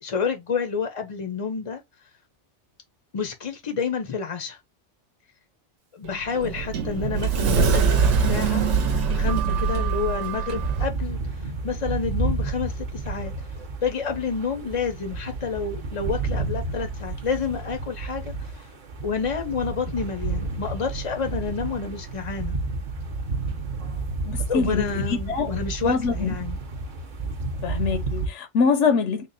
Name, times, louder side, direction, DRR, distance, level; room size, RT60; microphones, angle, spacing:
voice 1, 0.0-1.8 3.1-4.6 5.9-8.7 9.1-13.3 13.8-18.3 19.0-22.6 24.5-26.6, left 5 dB, 45° left, 0.4 m, -29 dB
Sliding door, 6.0-10.9, right 5 dB, 80° right, 1.0 m, -23 dB
sound 1, 10.5-28.3, right 3 dB, 50° right, 0.8 m, -31 dB
voice 2, 24.3-25.5 25.8-26.3 27.6-29.3, left 5 dB, 85° left, 0.9 m, -24 dB
3.7 x 2.1 x 3.9 m
omnidirectional pair, 1.2 m